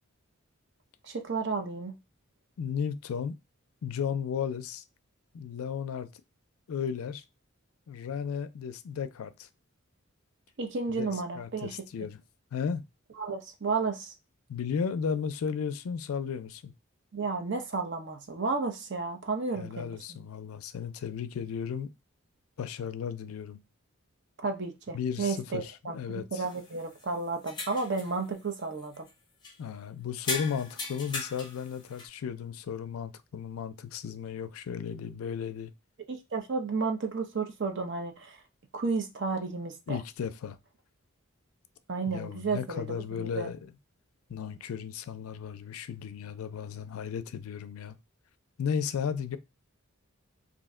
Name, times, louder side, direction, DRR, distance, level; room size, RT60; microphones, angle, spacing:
voice 1, 1.0-1.9 10.6-11.7 13.2-14.1 17.1-20.0 24.4-29.1 36.1-38.4 38.7-40.0 41.9-43.5, right 4 dB, 55° right, 0.6 m, -32 dB
voice 2, 2.6-3.4 3.8-4.8 5.3-6.1 6.7-7.2 7.9-9.5 11.0-12.2 12.5-12.8 14.5-16.7 19.6-21.9 22.6-23.6 24.9-26.4 29.6-35.7 39.9-40.6 42.1-43.7 44.3-48.0 48.6-49.4, left 7 dB, 80° left, 0.4 m, -34 dB
sound 1, 26.4-27.1 27.5-28.2 28.6-29.1 29.4-29.6 30.2-32.1, left 3 dB, 20° left, 0.6 m, -38 dB
2.6 x 2.1 x 3.6 m
head